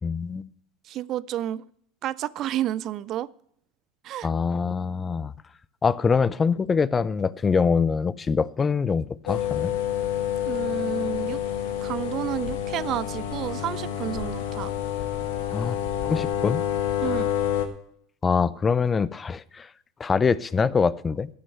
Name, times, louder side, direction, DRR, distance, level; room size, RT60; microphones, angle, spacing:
voice 1, 0.0-0.5 4.2-5.3 5.8-9.7 15.5-15.8 16.0-16.6 18.2-19.7 20.0-21.3, left 5 dB, 25° left, 0.5 m, -24 dB
voice 2, 0.9-1.6 2.0-3.3 4.0-4.3 10.5-11.4 11.8-14.7 17.0-17.3, right 12 dB, 45° right, 0.4 m, -30 dB
sound 1, 9.3-17.7, left 10 dB, 70° left, 1.4 m, -28 dB
12.0 x 6.2 x 7.5 m
hypercardioid pair, 85°, 0 cm